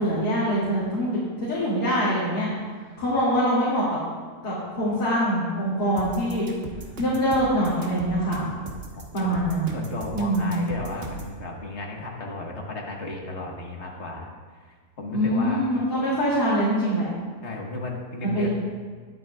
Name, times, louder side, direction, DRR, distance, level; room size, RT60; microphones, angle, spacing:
voice 1, 0.0-2.5 3.0-4.0 4.4-6.5 7.0-8.5 9.1-9.7 10.1-10.6 15.1-17.1 18.3-18.5, equal, 65° left, -10 dB, 3.2 m, -24 dB
sound 1, 6.0-11.3, right 2 dB, 40° right, 1.3 m, -38 dB
voice 2, 9.7-14.3 15.0-15.6 17.4-18.5, left 2 dB, 45° left, 0 dB, 1.6 m, -34 dB
19.5 x 8.4 x 2.4 m, 1.5 s
omnidirectional pair, 1.8 m